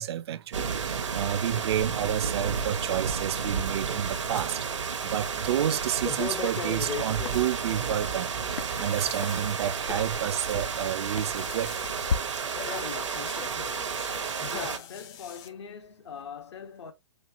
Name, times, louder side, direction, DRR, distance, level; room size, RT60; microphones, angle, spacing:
voice 1, 0.0-11.7 14.2-14.5, right 10 dB, 60° right, 0.5 m, -30 dB
sound 1, 0.5-14.8, right 6 dB, 90° right, 0.8 m, -32 dB
sound 2, 3.7-4.5 4.8-7.4 8.5-15.5, left 7 dB, 25° left, 0.5 m, -41 dB
sound 3, 6.7-12.2, left 6 dB, 85° left, 0.6 m, -38 dB
voice 2, 14.5-16.9, left 7 dB, 70° left, 1.0 m, -41 dB
4.4 x 2.8 x 2.6 m
hypercardioid pair, 140°, 15 cm